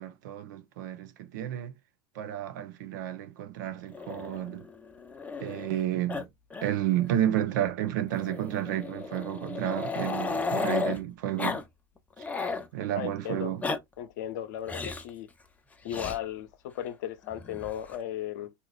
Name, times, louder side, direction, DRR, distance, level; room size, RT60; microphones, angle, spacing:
voice 1, 0.0-1.7 2.2-4.6 5.4-6.3 6.6-11.6 12.7-13.6, right 12 dB, 70° right, 0.6 m, -31 dB
Growling, 3.9-5.8 6.1-6.2 6.5-6.7 7.0-7.1 8.1-11.0 11.4-11.6 12.0-12.7 13.4-13.8 14.7-15.1 15.9-16.2 17.3-18.0, left 4 dB, 15° left, 0.6 m, -34 dB
voice 2, 12.9-13.5 14.0-15.3 15.8-18.5, left 11 dB, 70° left, 0.6 m, -36 dB
2.8 x 2.4 x 3.1 m
hypercardioid pair, 90°, 10 cm